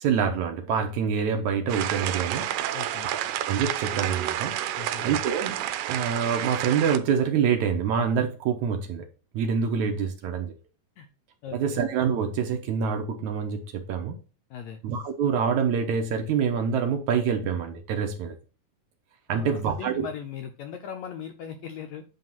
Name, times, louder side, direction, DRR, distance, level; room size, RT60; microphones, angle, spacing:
voice 1, 0.0-2.5 3.0-3.2 3.5-4.6 5.0-9.0 9.3-10.5 11.5-14.2 14.8-18.4 19.3-20.1, right 7 dB, 70° right, 2.1 m, -26 dB
sound 1, 1.7-7.0, right 12 dB, 85° right, 2.3 m, -30 dB
voice 2, 2.7-3.1 4.8-5.1 11.0-11.1 11.4-11.8 14.5-14.8 19.3-22.0, left 8 dB, 80° left, 1.6 m, -39 dB
9.3 x 3.1 x 5.7 m
omnidirectional pair, 3.9 m